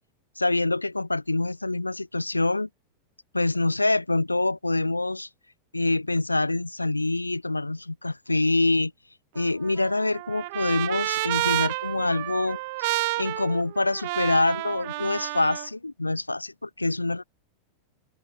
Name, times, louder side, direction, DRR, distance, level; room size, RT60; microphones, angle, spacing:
voice 1, 0.4-2.7 3.3-5.3 5.7-8.9 9.3-17.2, left 2 dB, 85° left, 1.5 m, -25 dB
Trumpet, 9.4-15.7, right 22 dB, 50° right, 3.8 m, -30 dB
open air
figure-of-eight pair, 90°, 0 cm